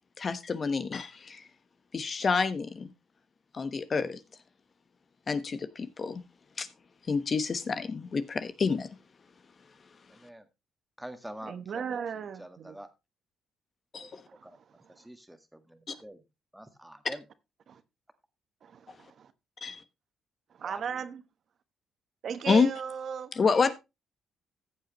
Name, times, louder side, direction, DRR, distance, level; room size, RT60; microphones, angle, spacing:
voice 1, 0.2-1.4 1.9-2.9 3.5-4.2 5.3-6.2 6.6-6.7 7.1-8.9 13.9-14.2 15.9-16.0 19.6-19.8 22.5-22.7 23.3-23.7, left 5 dB, 40° left, 1.1 m, -28 dB
voice 2, 10.1-10.5 11.0-12.9 14.0-14.1 14.4-16.2 16.5-17.2 20.6-21.0, right 1 dB, 5° right, 1.7 m, -46 dB
voice 3, 11.5-12.8 14.3-14.6 14.9-15.1 15.9-16.0 17.7-17.8 18.6-19.3 20.5-21.2 22.2-23.3, right 7 dB, 60° right, 1.1 m, -37 dB
14.5 x 7.9 x 3.0 m
cardioid pair, 90°, 0 cm